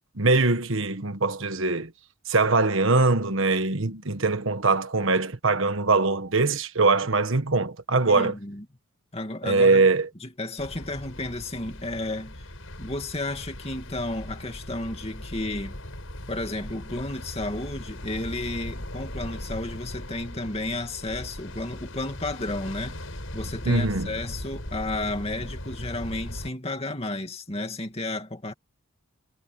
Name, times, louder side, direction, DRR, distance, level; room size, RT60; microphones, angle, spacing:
voice 1, 0.2-1.9 2.3-8.3 9.4-10.1 23.6-24.1, right 3 dB, 65° right, 1.4 m, -22 dB
voice 2, 8.0-8.6 9.1-9.8 10.2-12.5 12.8-15.8 16.3-28.5, left 2 dB, 30° left, 2.5 m, -32 dB
sound 1, 10.6-26.5, left 1 dB, 70° left, 6.7 m, -38 dB
head